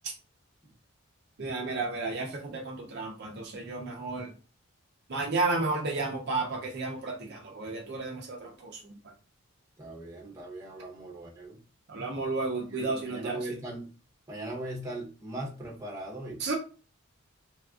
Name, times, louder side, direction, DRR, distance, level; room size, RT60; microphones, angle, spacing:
voice 1, 1.4-4.3 5.1-8.8 11.9-13.4 16.4-16.6, right 3 dB, 50° right, 1 dB, 0.5 m, -32 dB
voice 2, 9.8-11.6 12.7-13.9 14.3-16.4, right 1 dB, 15° right, -3 dB, 0.8 m, -39 dB
3.4 x 2.4 x 2.3 m, 0.35 s
head